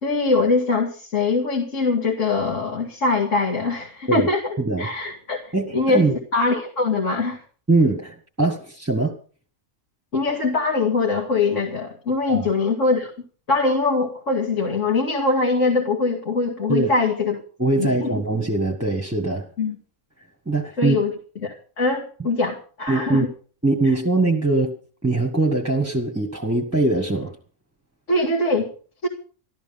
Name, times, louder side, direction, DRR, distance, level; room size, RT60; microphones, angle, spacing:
voice 1, 0.0-7.4 10.1-13.1 13.5-17.4 17.8-18.1 19.6-19.8 20.8-21.1 21.4-23.3 28.1-28.7 29.0-29.1, left 3 dB, 60° left, 0 dB, 2.5 m, -22 dB
voice 2, 4.6-4.9 5.5-6.2 7.7-9.1 12.3-12.5 16.7-16.9 17.6-19.5 20.4-20.9 22.9-23.2 23.6-24.7 25.0-27.3, right 2 dB, 10° right, 1 dB, 1.6 m, -22 dB
13.5 x 13.5 x 5.5 m, 0.40 s
omnidirectional pair, 1.5 m